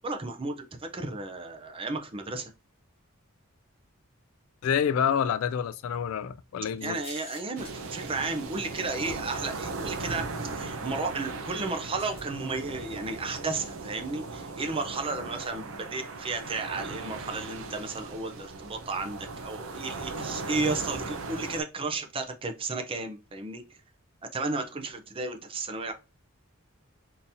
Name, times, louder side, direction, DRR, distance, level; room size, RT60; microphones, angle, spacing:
voice 1, 0.0-2.5 6.8-23.8 24.3-25.9, right 3 dB, 25° right, 0.5 m, -33 dB
voice 2, 4.6-7.0, left 7 dB, 70° left, 0.3 m, -27 dB
sound 1, 6.8-8.6 9.5-9.6 12.0-12.2, left 3 dB, 25° left, 0.9 m, -48 dB
sound 2, 7.6-21.6, right 3 dB, 70° right, 0.6 m, -38 dB
3.8 x 2.7 x 2.7 m
head